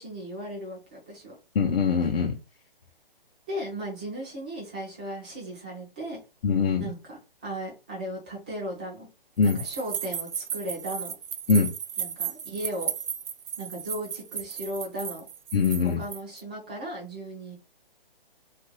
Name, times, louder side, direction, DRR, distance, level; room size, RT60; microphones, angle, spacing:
voice 1, 0.0-1.3 3.5-6.2 6.8-9.1 9.4-11.1 12.0-12.9 13.6-15.2 16.0-17.5, equal, 10° right, 0.4 m, -36 dB
voice 2, 1.6-2.4 6.4-6.9 9.4-9.6 11.5-11.7 15.5-16.0, left 5 dB, 75° left, 0.7 m, -23 dB
sound 1, 9.4-16.4, right 8 dB, 70° right, 0.5 m, -35 dB
2.6 x 2.5 x 2.9 m
hypercardioid pair, 160°, 29 cm